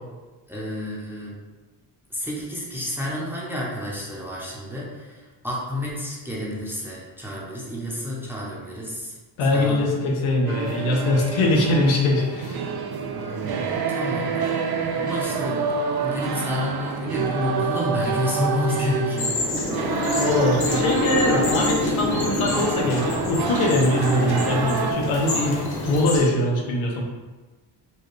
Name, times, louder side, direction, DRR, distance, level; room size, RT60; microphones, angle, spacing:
voice 1, 0.5-1.4 2.1-9.1 9.5-9.8 13.1-14.7 14.9-15.7 16.0-19.6 25.3-25.9, left 1 dB, 5° right, -5 dB, 0.6 m, -30 dB
voice 2, 9.4-12.6 20.0-25.6 25.8-27.0, left 1 dB, 80° left, 0 dB, 0.8 m, -22 dB
sound 1, 10.5-24.9, right 5 dB, 50° right, 0.5 m, -27 dB
sound 2, 19.1-26.2, left 2 dB, 50° left, 1.0 m, -27 dB
4.3 x 2.3 x 3.1 m, 1.3 s
cardioid pair, 125°, 48 cm